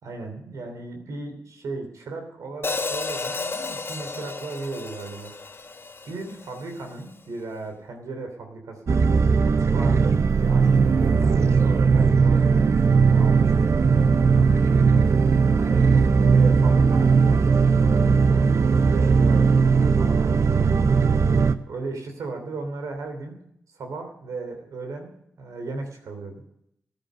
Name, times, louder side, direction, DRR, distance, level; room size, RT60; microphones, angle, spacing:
voice 1, 0.0-5.3 6.0-9.0 9.4-12.7 13.0-14.1 15.6-17.7 18.1-21.0 21.7-23.4 23.7-25.1 25.4-26.4, right 3 dB, 75° right, 4 dB, 3.0 m, -36 dB
Hi-hat, 2.6-6.8, left 3 dB, 45° left, 0.9 m, -32 dB
sound 1, 8.9-21.5, right 5 dB, 60° right, 0.8 m, -18 dB
14.5 x 10.5 x 6.7 m, 0.76 s
supercardioid pair, 50°, 6 cm